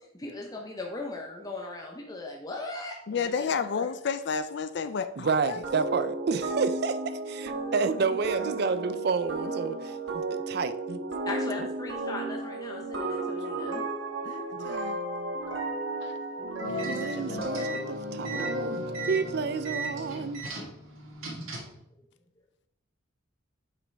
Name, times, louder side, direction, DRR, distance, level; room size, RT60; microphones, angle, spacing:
voice 1, 0.1-3.9 11.3-13.8, left 2 dB, 20° left, 0 dB, 0.8 m, -38 dB
voice 2, 3.1-5.6 13.1-13.7 14.2-15.0 16.0-16.2 16.6-17.9, left 6 dB, 55° left, 11 dB, 0.4 m, -33 dB
voice 3, 5.2-11.0 11.6-11.7 16.8-20.4, right 5 dB, 50° right, 13 dB, 0.4 m, -30 dB
sound 1, 5.6-20.2, right 2 dB, 70° right, 1.3 m, -34 dB
sound 2, 16.6-21.8, right 3 dB, 90° right, 1.6 m, -38 dB
8.4 x 5.0 x 3.4 m, 0.77 s
head